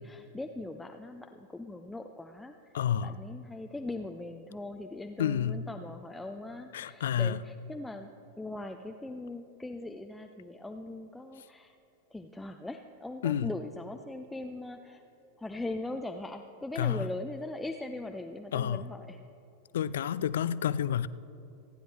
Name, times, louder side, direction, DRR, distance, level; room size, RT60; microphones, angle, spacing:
voice 1, 0.0-2.7 3.0-8.1 8.4-11.8 12.1-15.0 15.4-19.2, left 2 dB, 5° left, 4 dB, 0.5 m, -40 dB
voice 2, 2.7-3.2 5.2-5.7 6.7-7.4 13.2-13.5 16.8-17.1 18.5-18.9 19.7-21.1, left 9 dB, 60° left, 17 dB, 0.4 m, -29 dB
27.0 x 10.0 x 3.3 m, 2.9 s
figure-of-eight pair, 90°, 0 cm